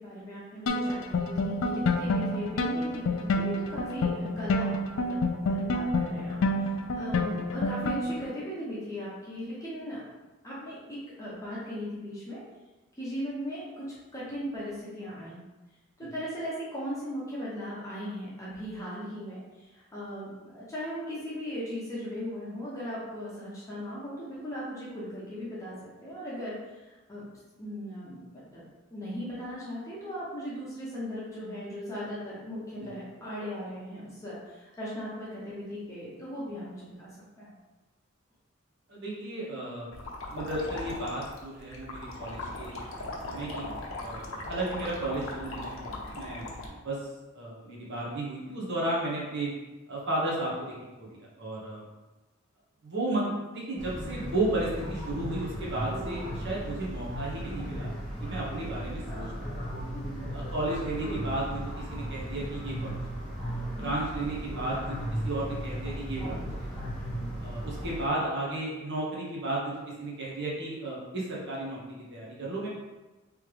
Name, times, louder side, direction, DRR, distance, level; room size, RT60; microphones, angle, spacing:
voice 1, 0.0-10.0 10.4-12.4 13.0-13.9 14.1-15.4 16.0-27.2 27.6-28.6 28.9-37.1 37.4-37.5 59.8-60.3, equal, 15° left, -8 dB, 0.9 m, -38 dB
sound 1, 0.7-8.3, left 2 dB, 70° left, 0.4 m, -28 dB
voice 2, 38.9-39.9 40.3-47.0 47.3-49.5 49.9-50.7 51.0-51.8 52.8-59.5 60.3-63.0 63.5-64.9 65.2-66.8 67.4-72.7, right 2 dB, 60° right, -5 dB, 1.2 m, -34 dB
sound 2, 39.9-46.7, left 2 dB, 90° left, 0.8 m, -39 dB
sound 3, 53.8-68.1, equal, ahead, 1.5 m, -36 dB
3.5 x 3.2 x 3.3 m, 1.1 s
head